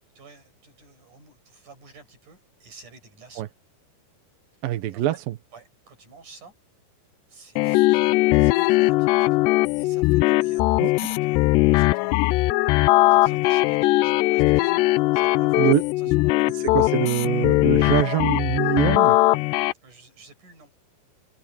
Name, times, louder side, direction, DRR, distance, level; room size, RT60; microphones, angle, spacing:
voice 1, 0.0-3.5 4.5-4.6 4.9-5.2 5.5-6.5 7.3-9.4 9.7-12.5 12.7-14.8 15.1-16.9 19.8-20.9, right 4 dB, 45° right, 8.4 m, -50 dB
voice 2, 4.6-5.3 10.8-10.9 15.6-15.8 16.5-19.2, right 14 dB, 70° right, 2.3 m, -24 dB
sound 1, 7.6-19.7, left 20 dB, 85° left, 2.5 m, -20 dB
omnidirectional pair, 5.2 m